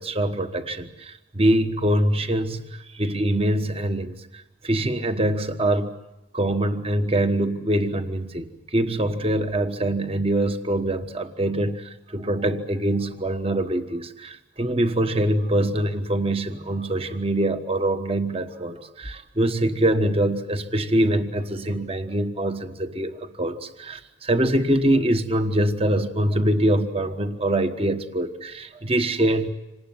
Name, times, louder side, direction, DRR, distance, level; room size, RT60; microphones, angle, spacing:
voice 1, 0.0-5.9 6.3-29.5, right 1 dB, 30° right, 8 dB, 1.3 m, -24 dB
26.5 x 19.5 x 9.5 m, 0.97 s
head